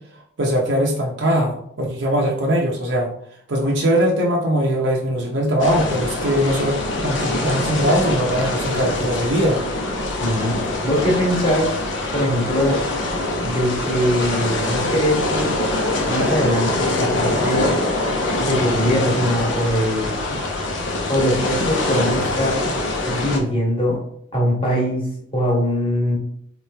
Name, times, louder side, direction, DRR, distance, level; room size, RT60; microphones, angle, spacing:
voice 1, 0.4-3.1 3.5-6.8 7.0-9.6, equal, 70° right, -1 dB, 0.7 m, -20 dB
sound 1, 5.6-23.4, left 2 dB, 75° left, 0.8 m, -24 dB
voice 2, 10.2-11.8 12.1-12.8 13.4-15.5 16.1-17.7 18.4-20.1 21.1-22.6 23.0-24.0 24.3-26.2, equal, 25° left, -2 dB, 1.2 m, -21 dB
3.8 x 3.1 x 3.3 m, 0.68 s
head